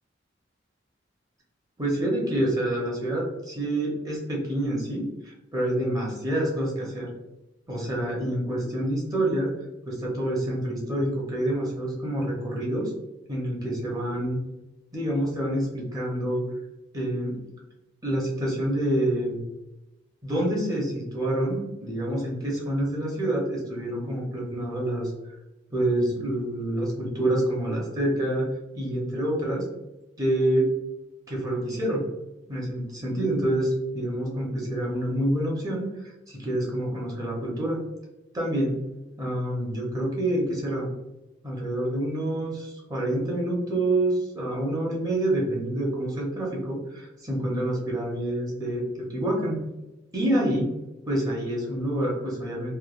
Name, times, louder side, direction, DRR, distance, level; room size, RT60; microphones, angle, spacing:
voice 1, 1.8-7.1 7.7-9.5 9.9-12.9 13.3-14.4 14.9-16.5 16.9-17.4 18.0-19.4 20.2-25.1 25.7-28.5 28.7-29.7 30.2-30.7 31.3-32.1 32.5-37.8 38.3-38.8 39.2-40.9 41.4-49.6 50.1-50.8 51.1-52.7, right 1 dB, 20° right, -3 dB, 0.6 m, -27 dB
3.1 x 2.1 x 2.3 m, 0.99 s
head